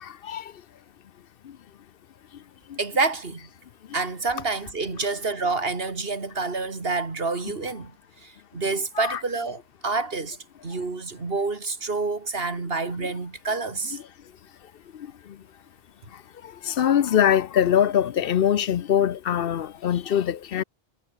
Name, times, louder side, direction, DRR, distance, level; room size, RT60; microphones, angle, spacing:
voice 1, 2.8-3.5 3.9-7.9 8.2-10.4 10.6-14.0, right 3 dB, 70° right, 2.5 m, -28 dB
voice 2, 16.7-20.6, left 9 dB, 70° left, 0.8 m, -22 dB
omnidirectional pair, 1.0 m